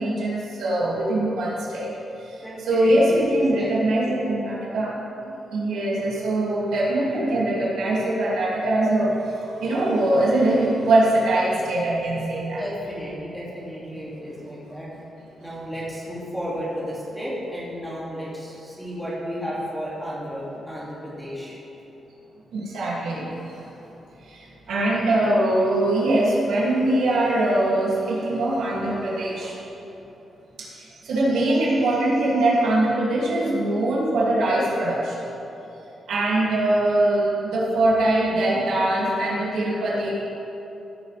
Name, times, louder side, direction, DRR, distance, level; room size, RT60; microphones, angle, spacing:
voice 1, 0.0-1.9 2.7-4.9 5.5-9.1 9.4-12.6 22.5-23.6 24.3-29.5 30.6-35.2 36.1-40.1, right 1 dB, 85° right, -6 dB, 2.6 m, -22 dB
voice 2, 2.4-3.2 3.5-4.0 12.5-14.9 15.4-21.6, equal, 5° left, -7 dB, 2.6 m, -33 dB
16.0 x 7.5 x 3.5 m, 3.0 s
wide cardioid pair, 140°, 0 cm